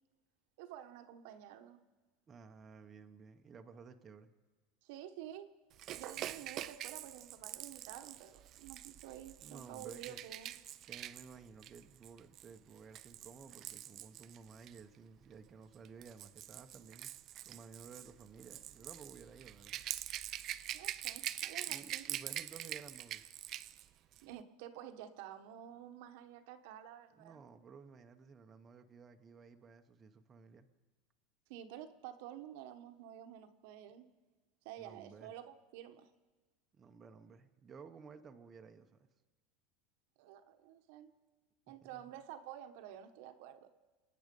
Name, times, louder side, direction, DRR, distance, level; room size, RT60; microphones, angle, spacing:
voice 1, 0.6-1.8 4.8-5.5 6.0-10.5 20.7-22.1 24.2-27.4 31.5-34.1 34.6-36.1 40.2-41.1 41.7-43.7, right 11 dB, 70° right, 8 dB, 1.1 m, -50 dB
voice 2, 2.3-4.3 6.2-6.4 9.4-10.2 10.8-19.8 21.7-23.2 27.1-30.7 34.8-35.3 36.7-39.1 41.7-42.1, right 5 dB, 25° right, 6 dB, 0.8 m, -55 dB
Rattle / Rattle (instrument), 5.8-14.8 15.7-23.8 24.1-24.3, right 12 dB, 40° right, 0.5 m, -45 dB
26.5 x 9.4 x 5.3 m, 1.2 s
supercardioid pair, 135°, 0 cm